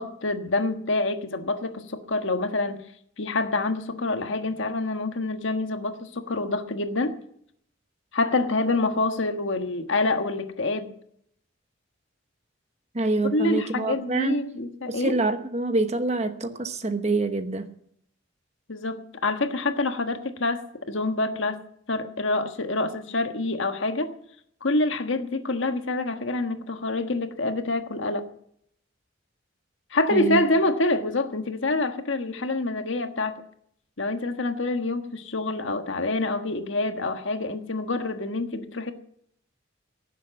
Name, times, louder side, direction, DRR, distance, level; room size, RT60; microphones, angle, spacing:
voice 1, 0.0-2.8 3.2-7.2 8.1-10.9 13.3-15.2 18.7-21.6 21.9-24.1 24.6-28.3 29.9-33.4 34.0-38.9, left 2 dB, 75° left, 1.4 m, -26 dB
voice 2, 12.9-14.4 14.9-17.7 30.1-30.4, right 2 dB, 35° right, 1.1 m, -26 dB
17.0 x 7.5 x 8.6 m
head